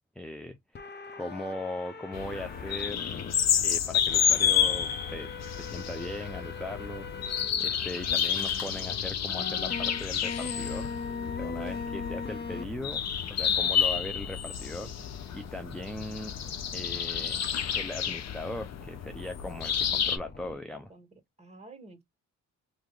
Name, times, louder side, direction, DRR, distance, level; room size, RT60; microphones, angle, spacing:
voice 1, 0.2-0.8 1.1-3.1 3.6-7.1 7.6-10.9 11.3-13.0 13.3-14.9 15.3-16.3 16.7-17.4 17.7-20.9, left 1 dB, ahead, 0.5 m, -39 dB
sound 1, 0.7-3.3 4.1-7.5 8.1-8.2 9.3-20.5, left 4 dB, 35° left, 1.0 m, -42 dB
sound 2, 2.1-20.2, left 8 dB, 60° left, 0.8 m, -30 dB
voice 2, 8.3-9.1 15.6-16.1 20.9-21.1 21.4-22.0, right 2 dB, 20° right, 1.7 m, -51 dB
3.2 x 2.9 x 3.7 m
cardioid pair, 90°, 30 cm